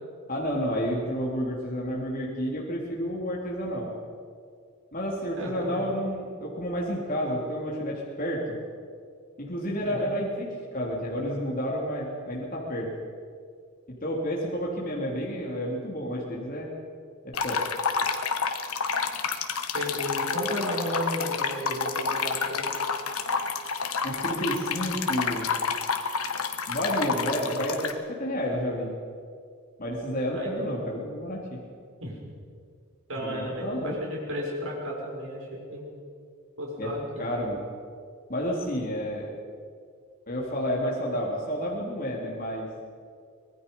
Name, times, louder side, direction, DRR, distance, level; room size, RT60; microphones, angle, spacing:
voice 1, 0.3-3.9 4.9-8.5 9.4-10.5 10.7-12.9 14.0-16.7 17.2-17.7 24.0-25.5 26.7-28.9 29.8-31.6 33.2-34.0 36.8-36.9 37.2-37.6 38.3-39.3 40.3-42.7, equal, 40° left, -3 dB, 3.4 m, -30 dB
voice 2, 5.3-5.9 9.8-10.1 19.7-22.7 30.3-30.7 32.0-32.1 33.1-35.9 36.6-37.2, equal, 65° right, -2 dB, 6.6 m, -33 dB
sound 1, 17.3-27.9, left 5 dB, 90° left, 1.5 m, -29 dB
25.5 x 19.5 x 5.6 m, 2.2 s
head